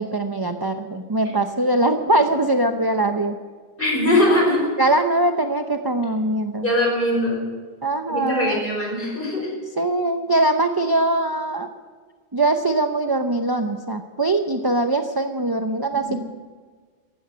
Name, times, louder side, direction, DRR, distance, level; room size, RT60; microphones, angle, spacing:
voice 1, 0.0-3.4 4.8-6.7 7.8-8.6 9.8-11.7 12.3-16.2, right 2 dB, 25° right, 6 dB, 0.6 m, -22 dB
voice 2, 3.8-4.7 6.6-7.4 8.1-9.5 16.1-16.2, left 1 dB, 45° left, -2 dB, 5.6 m, -21 dB
15.0 x 12.0 x 7.7 m, 1.5 s
omnidirectional pair, 1.3 m